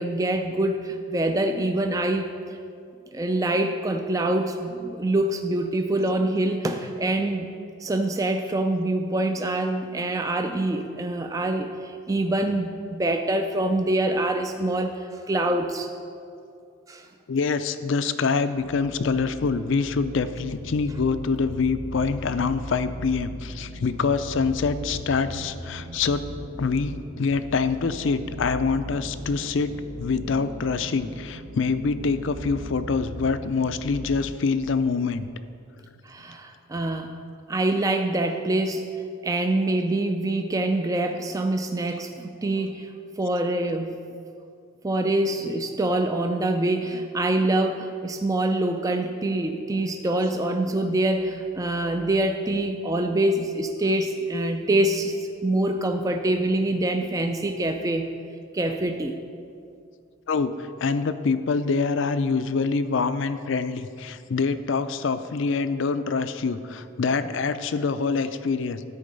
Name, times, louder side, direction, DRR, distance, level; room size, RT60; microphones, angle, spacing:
voice 1, 0.0-2.6 3.1-7.5 7.8-15.9 16.9-17.1 36.0-37.1 37.5-38.8 39.2-42.9 43.2-43.9 44.8-55.2 55.4-58.1 58.5-59.2, right 1 dB, 15° right, 5 dB, 0.3 m, -25 dB
voice 2, 17.3-26.2 26.6-29.7 30.0-35.3 60.3-68.8, left 4 dB, 60° left, 12 dB, 0.4 m, -25 dB
sound 1, 18.6-34.3, equal, 60° right, 0.9 m, -38 dB
13.5 x 4.6 x 5.3 m, 2.4 s
head